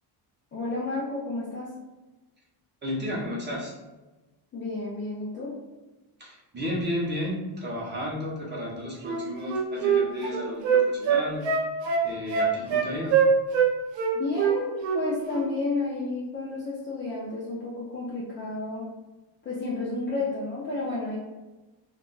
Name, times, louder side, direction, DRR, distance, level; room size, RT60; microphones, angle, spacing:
voice 1, 0.5-1.7 4.5-5.5 14.1-18.9 19.4-21.2, left 3 dB, 25° left, -7 dB, 0.3 m, -31 dB
voice 2, 2.8-3.8 6.2-11.5 12.0-13.2, left 1 dB, 20° right, -5 dB, 0.6 m, -32 dB
Wind instrument woodwind instrument, 9.0-13.7 14.0-15.0 15.3-15.5, right 7 dB, 65° right, 0.6 m, -23 dB
2.3 x 2.2 x 3.7 m, 1.1 s
cardioid pair, 165°, 48 cm